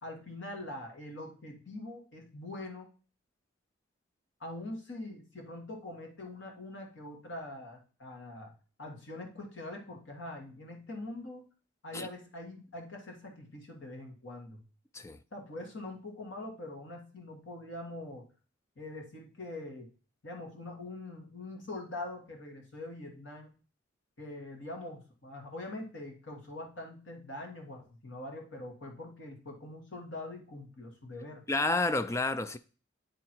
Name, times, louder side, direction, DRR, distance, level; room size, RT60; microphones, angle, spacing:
voice 1, 0.0-2.9 4.4-8.5 8.8-11.5 11.8-14.6 15.3-18.3 18.8-19.9 20.2-23.5 24.2-31.5, left 2 dB, 65° left, 1.9 m, -43 dB
voice 2, 31.5-32.6, left 2 dB, 15° left, 0.3 m, -30 dB
9.1 x 3.8 x 4.5 m
head